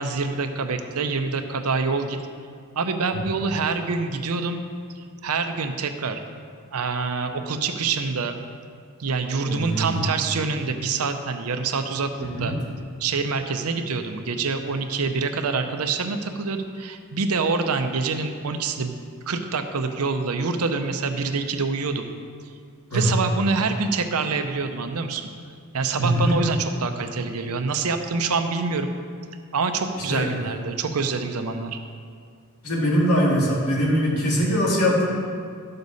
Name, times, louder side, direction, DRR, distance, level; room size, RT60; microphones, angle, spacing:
voice 1, 0.0-2.2 2.8-4.6 5.0-6.2 6.7-8.4 9.0-12.6 13.0-19.0 19.3-22.0 22.9-25.3 25.7-28.9 29.5-31.8, right 4 dB, 75° right, 7 dB, 0.7 m, -26 dB
voice 2, 9.4-10.0 12.2-12.5 22.9-23.1 26.0-26.4 30.1-30.3 32.6-35.1, equal, 75° left, -4 dB, 2.1 m, -22 dB
11.5 x 6.7 x 4.1 m, 2.2 s
head